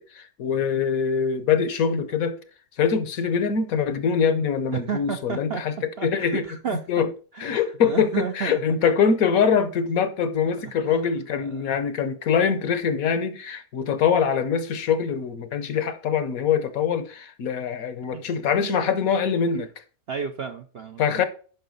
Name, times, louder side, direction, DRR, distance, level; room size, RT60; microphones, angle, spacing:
voice 1, 0.0-2.4 2.8-5.7 6.0-6.5 6.9-7.1 7.4-19.7 21.0-21.2, left 6 dB, 65° left, 1.3 m, -23 dB
voice 2, 4.7-5.6 6.0-6.8 7.3-8.6 10.9-11.0 11.4-11.8 18.1-18.3 20.1-21.2, right 7 dB, 55° right, 0.7 m, -32 dB
10.5 x 5.5 x 3.9 m
omnidirectional pair, 1.7 m